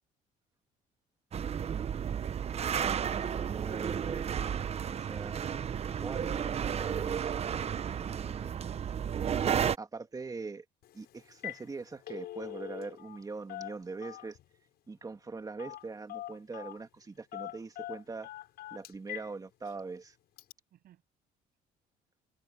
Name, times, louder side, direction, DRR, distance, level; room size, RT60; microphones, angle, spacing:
sound 1, 1.3-9.8, right 8 dB, 40° right, 0.8 m, -32 dB
voice 1, 1.4-2.3 8.1-9.0 20.7-21.0, right 12 dB, 65° right, 7.8 m, -60 dB
voice 2, 3.1-4.5 4.9-5.4 6.0-7.5 8.0-8.6 9.8-10.6 10.9-14.4 14.9-18.3 18.7-20.2, right 4 dB, 20° right, 2.6 m, -42 dB
Telephone, 10.8-11.0 11.3-11.6 11.9-13.2 13.5-14.4 15.6-15.8 16.1-16.8 17.3-19.3 19.7-19.8 20.4-20.5, left 14 dB, 70° left, 7.2 m, -42 dB
cardioid pair, 110°, 17 cm